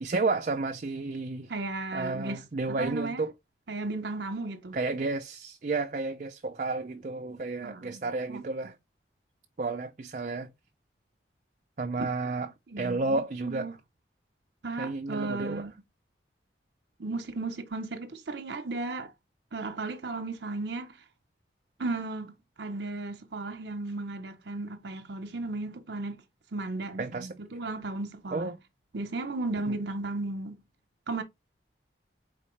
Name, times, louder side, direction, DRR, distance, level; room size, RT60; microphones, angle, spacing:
voice 1, 0.0-1.5 1.9-3.3 4.7-8.8 9.6-10.5 11.8-12.5 12.8-13.7 14.8-15.6 27.0-27.3 28.3-28.6, right 3 dB, 45° right, 0.4 m, -31 dB
voice 2, 1.5-3.2 3.7-4.8 7.6-8.4 12.7-13.7 14.6-15.7 17.0-19.1 19.5-21.0 21.8-26.2 26.5-28.5 28.9-30.6 31.1-31.2, right 2 dB, 70° right, 0.8 m, -35 dB
4.3 x 3.5 x 3.1 m
head